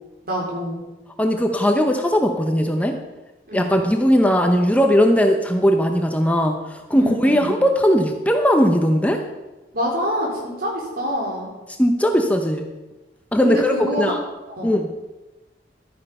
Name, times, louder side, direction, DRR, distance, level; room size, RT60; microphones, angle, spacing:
voice 1, 0.2-0.8 3.5-3.7 6.9-7.5 9.7-11.5 13.4-14.1 14.5-14.7, equal, 55° right, -2 dB, 4.1 m, -26 dB
voice 2, 1.2-3.0 3.5-9.2 11.8-12.7 13.3-14.2 14.6-14.9, equal, 10° left, 4 dB, 0.8 m, -18 dB
12.0 x 9.6 x 5.5 m, 1.1 s
head